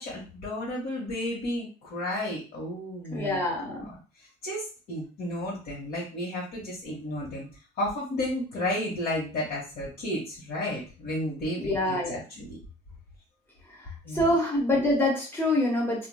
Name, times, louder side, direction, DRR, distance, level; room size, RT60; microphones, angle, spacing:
voice 1, 0.0-3.4 3.8-7.5 7.8-12.6 14.0-14.3, left 1 dB, 65° left, -5 dB, 1.3 m, -33 dB
voice 2, 3.1-3.9 11.6-12.2 13.7-16.1, left 1 dB, 15° left, -2 dB, 1.1 m, -26 dB
3.2 x 2.5 x 2.2 m, 0.35 s
cardioid pair, 110°, 17 cm